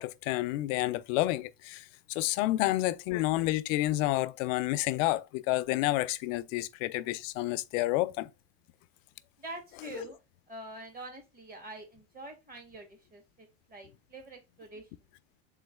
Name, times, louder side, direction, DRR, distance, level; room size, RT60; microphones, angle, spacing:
voice 1, 0.0-8.3 9.8-10.0, left 17 dB, 70° left, 0.5 m, -30 dB
voice 2, 9.4-10.2 10.5-14.9, right 2 dB, 20° right, 1.6 m, -46 dB
3.7 x 3.1 x 3.5 m
supercardioid pair, 130°, 40 cm